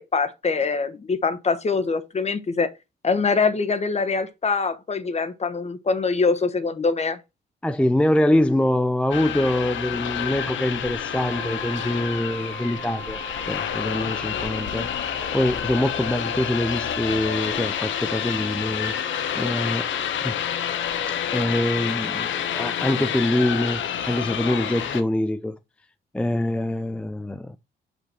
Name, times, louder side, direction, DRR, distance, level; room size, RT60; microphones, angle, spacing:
voice 1, 0.1-2.7 3.0-7.2, left 4 dB, 35° left, 1.2 m, -23 dB
voice 2, 7.6-18.9 19.3-19.9 20.2-20.4 21.3-25.6 26.1-27.6, left 1 dB, 5° left, 0.5 m, -24 dB
sound 1, 9.1-25.0, left 9 dB, 75° left, 1.2 m, -28 dB
sound 2, 11.1-22.0, right 3 dB, 45° right, 2.4 m, -41 dB
6.1 x 5.6 x 4.3 m
cardioid pair, 90°, 20 cm